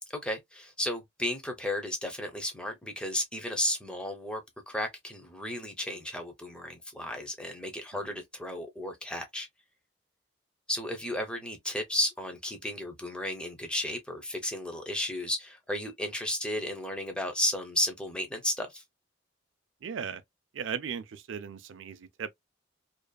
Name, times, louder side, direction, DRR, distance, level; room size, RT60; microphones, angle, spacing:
voice 1, 0.1-9.5 10.7-18.8, left 1 dB, 5° left, 0.6 m, -33 dB
voice 2, 19.8-20.2 20.5-22.3, right 7 dB, 75° right, 0.4 m, -37 dB
2.6 x 2.3 x 2.2 m
head